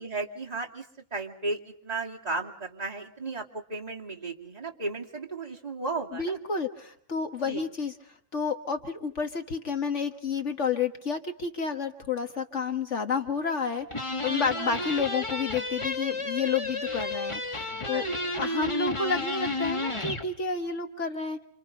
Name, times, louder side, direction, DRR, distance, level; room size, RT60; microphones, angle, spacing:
voice 1, 0.0-6.4 7.4-7.6 14.6-14.9 17.9-18.5, right 3 dB, 25° right, -1 dB, 2.7 m, -35 dB
voice 2, 6.1-7.9 8.3-18.0 18.3-21.4, left 5 dB, 55° left, 6 dB, 1.7 m, -30 dB
sound 1, 13.9-20.3, left 2 dB, 20° left, 1.7 m, -32 dB
28.0 x 28.0 x 5.4 m, 0.64 s
omnidirectional pair, 1.5 m